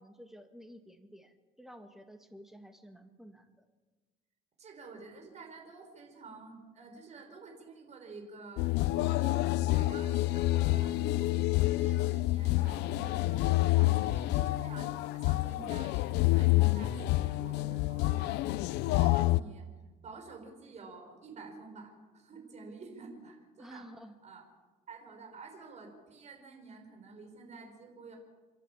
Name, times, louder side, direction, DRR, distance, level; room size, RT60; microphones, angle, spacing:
voice 1, 0.0-3.6 23.6-24.1, equal, ahead, 6 dB, 2.0 m, -52 dB
voice 2, 4.6-14.9 15.1-18.4 18.8-19.7 20.0-23.9 24.2-24.4 24.9-28.2, right 4 dB, 40° right, 3 dB, 5.2 m, -50 dB
sound 1, 8.6-19.4, left 18 dB, 85° left, 0.6 m, -28 dB
29.0 x 11.5 x 8.7 m, 1.3 s
cardioid pair, 110°, 17 cm